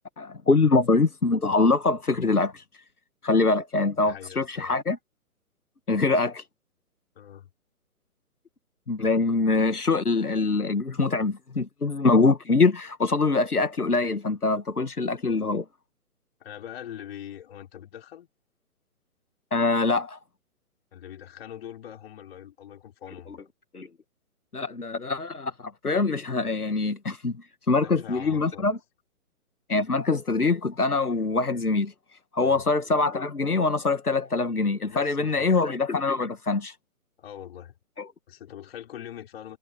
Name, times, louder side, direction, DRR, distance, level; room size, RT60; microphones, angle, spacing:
voice 1, 0.2-2.6 3.2-5.0 5.9-6.4 8.9-15.7 19.5-20.2 23.7-23.9 24.5-28.8 29.7-31.9 32.3-36.8 38.0-38.1, left 3 dB, 85° left, 1.8 m, -24 dB
voice 2, 3.9-4.7 7.1-7.5 16.4-18.3 20.9-23.5 27.8-28.7 32.4-32.6 34.9-35.7 37.2-37.7 38.3-39.6, left 10 dB, 40° left, 4.8 m, -42 dB
figure-of-eight pair, 135°, 44 cm